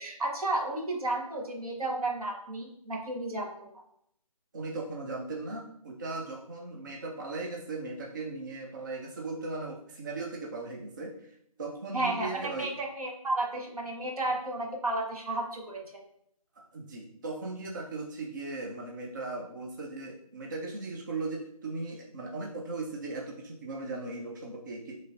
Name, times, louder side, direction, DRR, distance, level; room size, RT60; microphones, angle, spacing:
voice 1, 0.0-3.7 11.9-16.0, right 2 dB, 75° right, -1 dB, 1.4 m, -32 dB
voice 2, 4.5-12.7 16.6-25.0, right 3 dB, 30° right, 0 dB, 0.4 m, -38 dB
6.4 x 3.0 x 2.6 m, 0.71 s
figure-of-eight pair, 160°, 19 cm